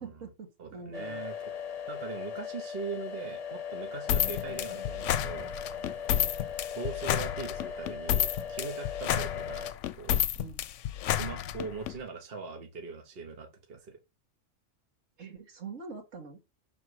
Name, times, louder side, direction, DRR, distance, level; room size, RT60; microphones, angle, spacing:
voice 1, 0.0-1.3 4.1-4.2 6.1-6.4 10.4-10.7 15.2-16.4, right 5 dB, 75° right, 2.1 m, -45 dB
voice 2, 0.6-1.5 1.9-5.5 6.7-10.2 11.0-14.0, right 5 dB, 50° right, 1.1 m, -41 dB
sound 1, 0.9-9.7, left 7 dB, 45° left, 0.5 m, -39 dB
sound 2, 4.1-11.9, left 11 dB, 75° left, 0.9 m, -30 dB
6.2 x 4.0 x 4.6 m
omnidirectional pair, 1.3 m